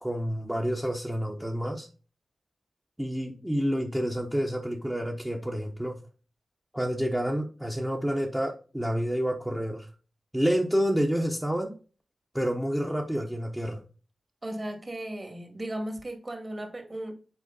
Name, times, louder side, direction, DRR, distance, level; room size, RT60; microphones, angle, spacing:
voice 1, 0.0-1.9 3.0-6.0 6.7-9.9 10.3-11.7 12.3-13.8, equal, 5° right, 1.0 m, -29 dB
voice 2, 14.4-17.1, right 1 dB, 30° right, 2.0 m, -36 dB
8.2 x 4.8 x 4.0 m
wide cardioid pair, 115°, 0 cm